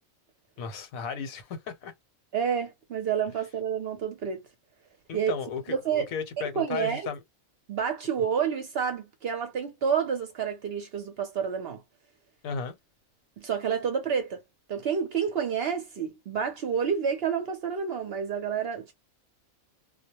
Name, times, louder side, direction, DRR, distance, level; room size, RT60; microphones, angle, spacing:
voice 1, 0.6-1.9 5.1-7.2 12.4-12.8, left 6 dB, 85° left, 1.1 m, -35 dB
voice 2, 2.3-4.4 5.1-5.4 5.7-6.1 6.6-7.1 7.7-11.8 13.4-14.4 14.7-18.9, right 7 dB, 60° right, 0.7 m, -29 dB
2.3 x 2.0 x 2.8 m
omnidirectional pair, 1.4 m